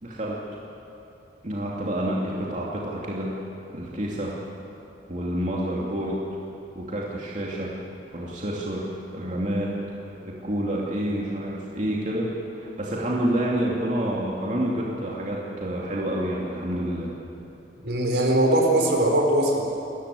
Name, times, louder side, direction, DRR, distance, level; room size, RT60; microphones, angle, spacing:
voice 1, 0.0-0.4 1.4-3.3 3.7-4.3 5.1-6.2 6.7-7.7 8.1-8.9 9.1-9.7 10.2-12.3 12.6-17.1, right 1 dB, 45° right, -4 dB, 2.7 m, -28 dB
voice 2, 17.8-19.6, right 1 dB, 75° right, 1 dB, 4.7 m, -21 dB
29.0 x 14.5 x 8.5 m, 2.9 s
head